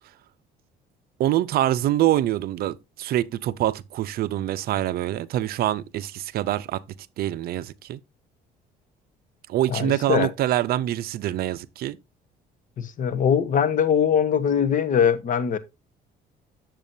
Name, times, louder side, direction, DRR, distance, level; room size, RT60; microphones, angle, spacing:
voice 1, 1.2-6.8 7.2-8.0 9.5-12.0, right 13 dB, 65° right, 0.5 m, -25 dB
voice 2, 9.7-10.3 12.8-15.6, left 7 dB, 50° left, 1.1 m, -22 dB
8.9 x 7.4 x 2.6 m
cardioid pair, 110°, 17 cm